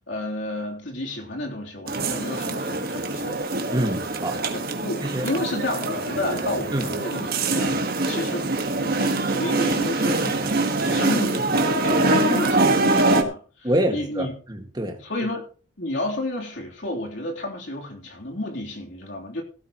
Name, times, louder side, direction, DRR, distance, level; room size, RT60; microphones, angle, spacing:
voice 1, 0.1-3.5 4.5-8.5 8.8-14.3 15.0-15.4 15.8-19.4, left 1 dB, 60° left, 3.4 m, -31 dB
sound 1, 1.9-13.2, right 2 dB, 45° right, 1.6 m, -24 dB
voice 2, 3.7-4.4 5.0-5.3 6.7-6.9 13.6-15.0, right 1 dB, 20° right, 1.9 m, -26 dB
16.0 x 13.0 x 3.1 m
head